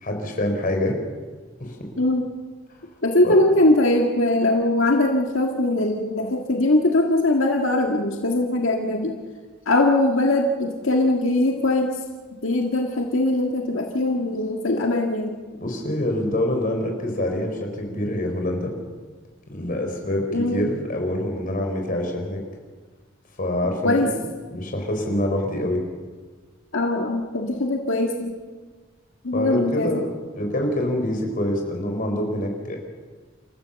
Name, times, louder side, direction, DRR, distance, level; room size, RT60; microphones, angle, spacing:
voice 1, 0.0-1.0 1.6-1.9 3.2-3.4 15.6-18.7 19.5-22.4 23.4-24.2 24.5-25.8 29.3-32.8, left 1 dB, 45° left, 2 dB, 4.2 m, -26 dB
voice 2, 3.0-9.2 9.7-12.0 12.4-15.3 20.3-20.7 23.8-24.1 26.7-28.3 29.2-30.0, left 2 dB, 85° left, 2 dB, 1.8 m, -21 dB
28.5 x 14.5 x 7.0 m, 1.4 s
head